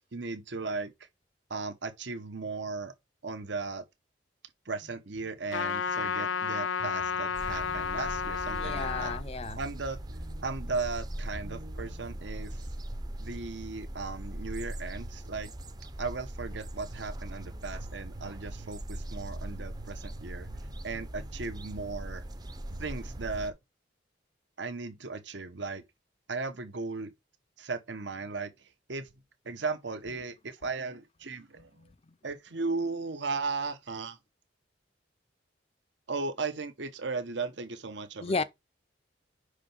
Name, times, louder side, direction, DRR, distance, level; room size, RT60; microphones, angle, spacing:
voice 1, 0.1-1.1 1.5-2.9 3.2-3.8 4.6-9.1 9.5-10.0 10.4-12.7 13.2-15.5 16.0-20.5 20.8-22.2 22.8-23.5 24.6-25.8 26.3-27.1 27.6-29.1 29.4-31.7 32.2-34.2 36.1-38.4, right 4 dB, 70° right, 1.0 m, -36 dB
sound 1, 4.8-23.2, right 1 dB, 50° right, 1.0 m, -52 dB
Trumpet, 5.5-9.2, left 6 dB, 85° left, 0.6 m, -32 dB
sound 2, 7.3-23.5, right 1 dB, 20° right, 0.6 m, -40 dB
voice 2, 8.5-9.6 31.8-31.9 38.2-38.4, left 4 dB, 30° left, 0.5 m, -33 dB
5.6 x 5.0 x 5.4 m
head